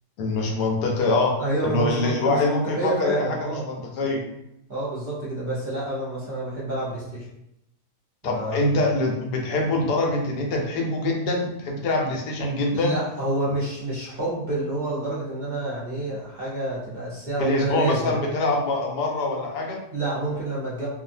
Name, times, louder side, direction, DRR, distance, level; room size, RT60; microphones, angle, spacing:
voice 1, 0.2-1.3 1.6-4.2 8.2-12.9 17.4-19.8, left 2 dB, 90° left, 0 dB, 1.2 m, -24 dB
voice 2, 1.4-3.6 4.7-7.3 8.2-8.8 12.7-18.1 19.9-20.9, right 2 dB, 35° right, -9 dB, 0.9 m, -28 dB
2.7 x 2.5 x 2.6 m, 0.80 s
omnidirectional pair, 1.7 m